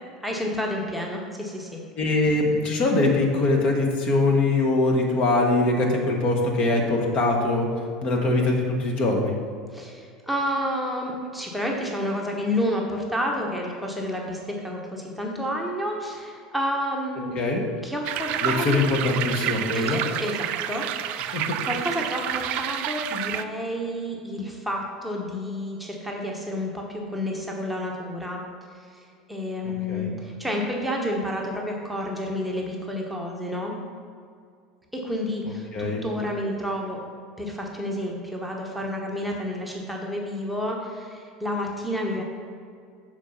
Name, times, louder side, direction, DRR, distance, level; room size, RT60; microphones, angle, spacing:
voice 1, 0.2-1.8 9.7-17.3 17.8-18.8 19.7-28.4 28.9-29.0 29.3-33.7 34.9-37.0 37.4-42.2, equal, ahead, -1 dB, 1.0 m, -30 dB
voice 2, 1.9-9.4 17.3-17.6 18.4-20.0 21.3-21.6 29.9-30.1 35.7-36.0, left 2 dB, 40° left, 1 dB, 1.2 m, -22 dB
sound 1, 18.0-23.4, right 10 dB, 45° right, 0.3 m, -29 dB
6.5 x 4.6 x 5.6 m, 2.3 s
figure-of-eight pair, 75°, 3 cm